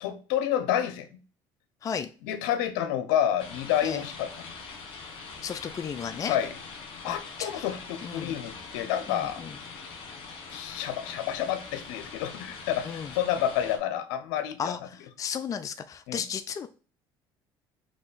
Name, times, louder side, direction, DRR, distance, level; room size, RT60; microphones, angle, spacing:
voice 1, 0.0-1.1 2.2-4.5 6.3-6.5 7.0-9.4 10.5-14.8 16.1-16.2, left 10 dB, 85° left, 0.6 m, -29 dB
sound 1, 3.4-13.8, left 4 dB, 60° left, 1.5 m, -43 dB
voice 2, 5.4-6.4 7.0-7.7 8.0-8.4 9.1-9.5 12.8-13.1 14.6-16.7, left 7 dB, 35° left, 0.4 m, -34 dB
4.2 x 2.9 x 4.0 m
supercardioid pair, 85°, 10 cm